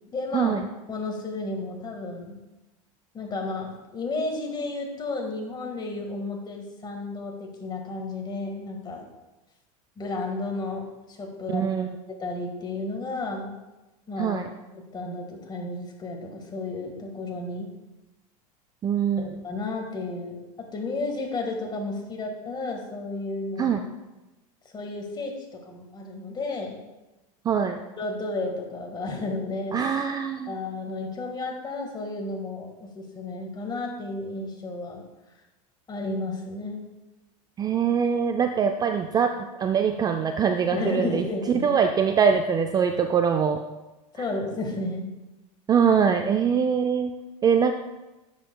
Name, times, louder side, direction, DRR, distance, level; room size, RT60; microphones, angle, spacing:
voice 1, 0.1-0.6 0.9-2.4 3.1-9.1 10.0-11.7 12.2-13.5 14.1-14.4 14.7-17.7 19.2-23.8 24.7-26.8 28.0-29.8 30.5-35.0 35.9-36.8 40.7-41.7 44.1-45.1, left 2 dB, 25° left, 2 dB, 1.7 m, -32 dB
voice 2, 11.5-11.9 14.2-14.5 18.8-19.4 23.6-23.8 27.5-27.8 29.7-30.5 37.6-43.6 45.7-47.1 47.4-47.7, right 7 dB, 20° right, 6 dB, 0.4 m, -23 dB
10.0 x 7.4 x 2.3 m, 1.0 s
hypercardioid pair, 110°, 18 cm